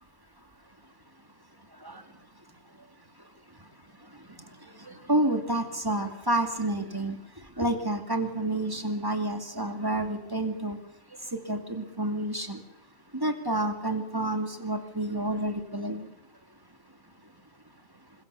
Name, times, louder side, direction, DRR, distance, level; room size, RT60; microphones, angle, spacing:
voice 1, 4.9-7.2 7.6-10.8 11.3-12.6 13.1-16.1, right 1 dB, 15° right, 6 dB, 2.4 m, -29 dB
25.0 x 22.0 x 6.9 m, 0.83 s
omnidirectional pair, 1.4 m